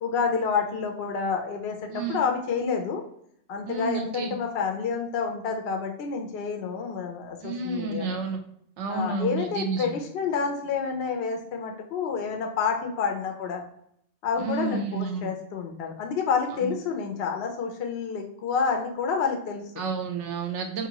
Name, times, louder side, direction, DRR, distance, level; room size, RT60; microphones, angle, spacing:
voice 1, 0.0-3.0 3.5-8.2 8.9-13.6 14.2-19.8, left 5 dB, 65° left, 3 dB, 0.7 m, -29 dB
voice 2, 3.7-4.3 7.4-8.4 8.8-10.0 14.4-15.3 16.7-16.8 19.8-20.9, right 4 dB, 70° right, 5 dB, 0.8 m, -30 dB
2.7 x 2.6 x 2.8 m, 0.70 s
omnidirectional pair, 1.4 m